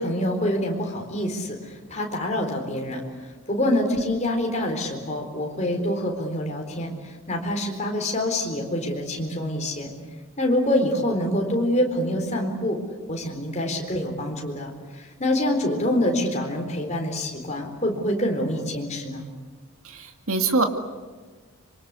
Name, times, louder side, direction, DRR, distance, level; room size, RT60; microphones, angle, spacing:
voice 1, 0.0-3.0 3.5-9.9 10.4-12.8 13.1-19.3, left 1 dB, 30° left, 2 dB, 4.1 m, -26 dB
voice 2, 19.8-20.6, right 3 dB, 75° right, 5 dB, 2.2 m, -24 dB
26.0 x 24.5 x 8.3 m, 1.4 s
head